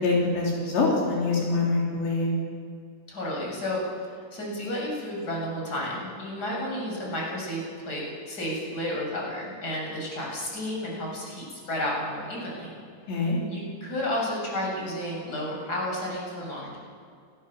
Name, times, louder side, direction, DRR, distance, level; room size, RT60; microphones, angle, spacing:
voice 1, 0.0-2.3 13.1-13.4, left 3 dB, 70° left, -3 dB, 5.6 m, -24 dB
voice 2, 3.1-12.8 13.2-16.8, left 1 dB, 20° left, -2 dB, 6.9 m, -32 dB
29.5 x 20.5 x 7.2 m, 2.2 s
omnidirectional pair, 5.4 m